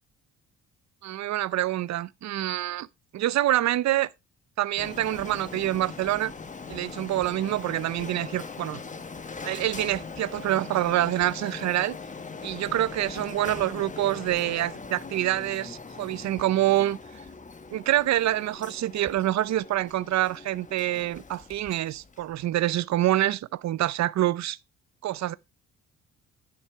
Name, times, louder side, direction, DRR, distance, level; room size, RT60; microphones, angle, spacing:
voice 1, 1.0-2.9 3.1-4.1 4.6-6.3 6.7-8.8 9.4-11.9 12.4-17.0 17.7-24.6 25.0-25.3, right 14 dB, 65° right, 0.7 m, -26 dB
Printer, 4.8-22.4, left 4 dB, 25° left, 1.1 m, -41 dB
10.5 x 6.8 x 4.6 m
cardioid pair, 90°, 30 cm